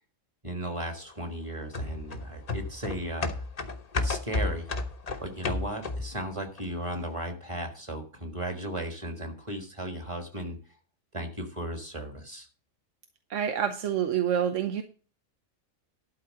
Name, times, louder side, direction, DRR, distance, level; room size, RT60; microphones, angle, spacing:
voice 1, 0.4-3.3 4.0-4.7 5.2-10.6 11.1-12.5, right 1 dB, 25° right, 4 dB, 1.6 m, -35 dB
sound 1, 1.7-6.2 6.6-6.7, left 3 dB, 35° left, 0.9 m, -32 dB
voice 2, 13.3-14.8, right 9 dB, 90° right, 6 dB, 1.2 m, -27 dB
12.0 x 4.2 x 7.5 m, 0.38 s
omnidirectional pair, 1.3 m